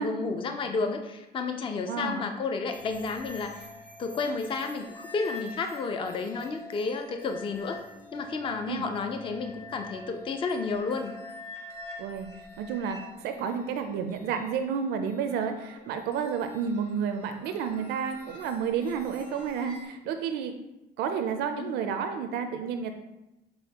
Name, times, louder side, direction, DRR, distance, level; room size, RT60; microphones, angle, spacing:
voice 1, 0.0-3.7 4.0-7.8 8.1-11.1 21.6-21.7, left 4 dB, 30° left, 5 dB, 0.4 m, -31 dB
voice 2, 1.9-2.3 8.7-8.9 12.0-12.3 12.6-20.5 21.0-22.9, right 6 dB, 80° right, 7 dB, 0.4 m, -31 dB
sound 1, 2.7-19.9, left 2 dB, 65° left, 1.3 m, -47 dB
4.1 x 3.9 x 2.8 m, 0.95 s
cardioid pair, 110°, 17 cm